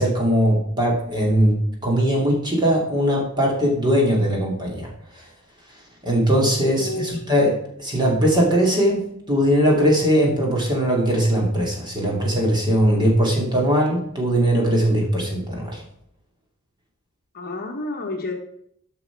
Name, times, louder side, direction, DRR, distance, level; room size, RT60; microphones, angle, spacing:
voice 1, 0.0-4.9 5.1-5.2 6.0-15.8, equal, 20° right, -2 dB, 2.7 m, -20 dB
voice 2, 6.8-7.4 17.3-18.3, left 2 dB, 45° left, 2 dB, 1.3 m, -30 dB
11.0 x 6.1 x 4.7 m, 0.71 s
head